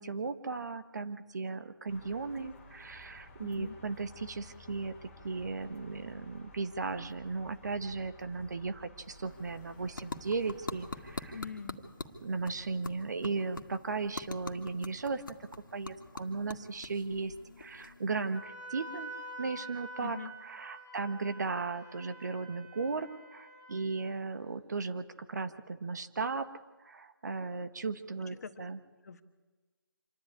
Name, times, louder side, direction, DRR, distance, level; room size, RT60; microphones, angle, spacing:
voice 1, 0.0-11.4 12.2-15.2 15.7-19.1 19.4-26.5 26.8-28.8, right 4 dB, 50° right, 11 dB, 1.3 m, -36 dB
sound 1, 1.9-11.4, left 1 dB, 10° left, 2.5 m, -54 dB
voice 2, 3.4-3.8 11.3-11.8 20.0-20.3 28.2-28.7 29.0-29.2, left 5 dB, 45° left, 8 dB, 1.4 m, -43 dB
sound 2, 9.0-18.4, left 3 dB, 65° left, 2.0 m, -45 dB
Wind instrument woodwind instrument, 18.3-24.1, right 1 dB, 10° right, 4.3 m, -47 dB
26.5 x 11.0 x 9.8 m, 1.3 s
figure-of-eight pair, 160°, 12 cm